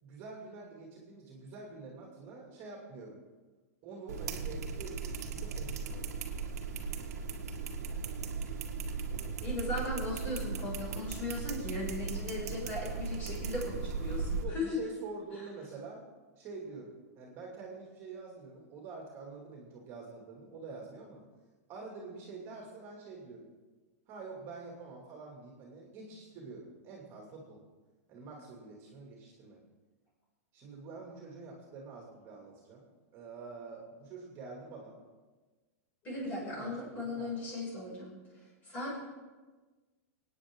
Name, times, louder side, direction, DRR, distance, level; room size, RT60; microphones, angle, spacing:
voice 1, 0.0-3.2 3.8-6.1 14.4-16.0 16.4-21.2 21.7-23.5 24.1-27.6 28.1-29.6 30.5-32.8 33.1-35.0 36.3-37.3, right 4 dB, 30° right, -1 dB, 2.7 m, -46 dB
sound 1, 4.1-14.4, right 5 dB, 90° right, 1.8 m, -37 dB
voice 2, 9.4-14.7 36.0-38.1 38.6-39.0, left 2 dB, 20° left, -4 dB, 5.9 m, -37 dB
25.5 x 9.5 x 3.8 m, 1.3 s
supercardioid pair, 160°, 8 cm